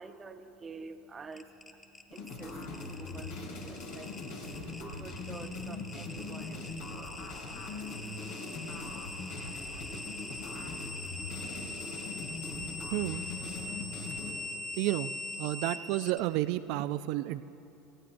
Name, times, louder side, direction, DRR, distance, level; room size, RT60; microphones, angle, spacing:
voice 1, 0.0-9.5, right 4 dB, 25° right, 6 dB, 0.9 m, -50 dB
sound 1, 1.3-16.2, left 2 dB, 25° left, 2.2 m, -42 dB
sound 2, 2.1-14.3, left 3 dB, 75° left, 2.5 m, -41 dB
voice 2, 12.9-13.2 14.8-15.1 15.4-17.4, right 16 dB, 60° right, 12 dB, 0.4 m, -31 dB
28.5 x 16.5 x 2.6 m, 2.9 s
hypercardioid pair, 75°, 0 cm